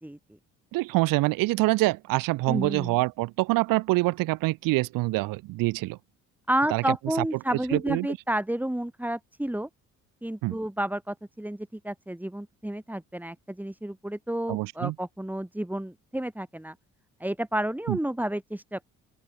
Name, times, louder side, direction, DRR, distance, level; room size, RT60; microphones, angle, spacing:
voice 1, 0.7-6.0 6.7-6.8 7.7-8.1 10.4-10.5 14.5-14.9 17.9-18.0, right 21 dB, 90° right, 2.3 m, -25 dB
voice 2, 2.5-3.0 6.5-9.7 10.2-16.7 17.2-18.9, right 1 dB, 5° right, 4.1 m, -31 dB
open air
cardioid pair, 80°, 32 cm